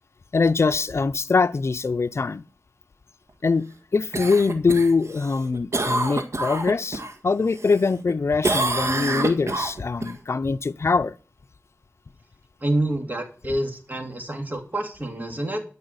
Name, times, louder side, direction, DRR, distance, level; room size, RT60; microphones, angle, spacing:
voice 1, 0.3-2.4 3.4-3.6 3.9-11.2, left 4 dB, 60° left, 0.5 m, -23 dB
Cough, 4.1-7.1 7.5-8.1 8.4-10.1 14.5-14.6, right 2 dB, 65° right, 1.6 m, -27 dB
voice 2, 12.6-15.6, right 1 dB, 35° right, 2.9 m, -27 dB
12.5 x 5.5 x 8.0 m
wide cardioid pair, 65°, 5 cm